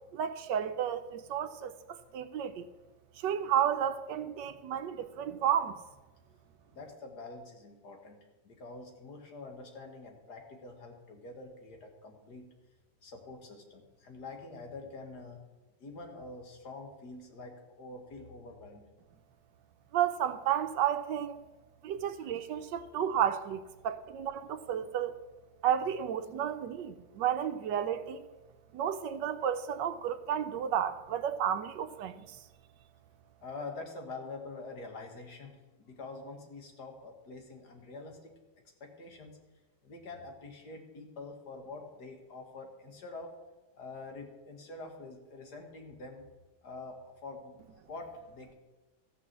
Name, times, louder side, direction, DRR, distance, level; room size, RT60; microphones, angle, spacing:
voice 1, 0.1-2.6 3.2-5.7 19.9-21.4 21.8-25.2 25.6-28.2 28.7-32.2, right 9 dB, 75° right, 1.2 m, -32 dB
voice 2, 6.7-8.2 8.4-12.5 13.0-15.4 15.8-18.8 22.9-23.0 33.4-38.4 38.8-39.4 39.8-43.3 43.8-46.2 46.6-47.6 47.9-48.5, left 3 dB, 60° left, 2.0 m, -46 dB
14.0 x 6.0 x 7.4 m
omnidirectional pair, 2.1 m